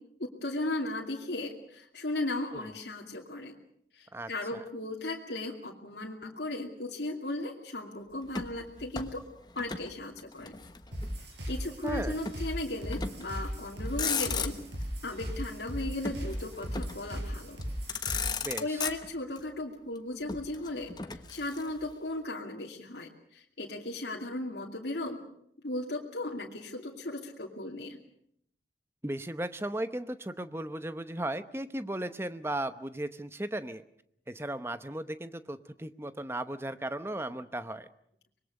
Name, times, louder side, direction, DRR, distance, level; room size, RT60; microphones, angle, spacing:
voice 1, 0.2-3.6 3.9-9.2 9.6-10.5 11.5-14.6 15.0-17.6 18.2-25.2 25.6-28.0, left 2 dB, 75° left, -1 dB, 2.7 m, -36 dB
voice 2, 4.1-4.6 11.8-12.2 18.4-18.9 29.0-33.8 34.3-37.9, right 1 dB, 15° right, 12 dB, 0.8 m, -36 dB
Motor vehicle (road), 8.3-9.9 10.2-11.3 12.2-12.5 12.9-13.4 13.8-14.8 16.0-17.1 17.6-17.7 17.9-19.4 20.3-21.9, left 5 dB, 25° left, 1.2 m, -36 dB
sound 1, 10.9-18.5, equal, 85° right, 7.5 m, -37 dB
25.0 x 21.5 x 6.5 m, 0.70 s
head